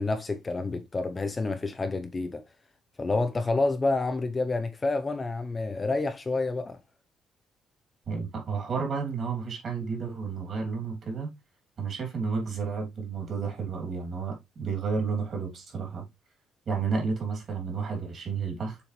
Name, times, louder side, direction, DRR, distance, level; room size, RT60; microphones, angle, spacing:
voice 1, 0.0-2.4 3.0-6.8, left 3 dB, 20° left, 0.6 m, -28 dB
voice 2, 8.1-11.3 11.8-16.0 16.7-18.8, right 5 dB, 40° right, 3.0 m, -31 dB
7.2 x 4.3 x 3.2 m
cardioid pair, 150°, 0 cm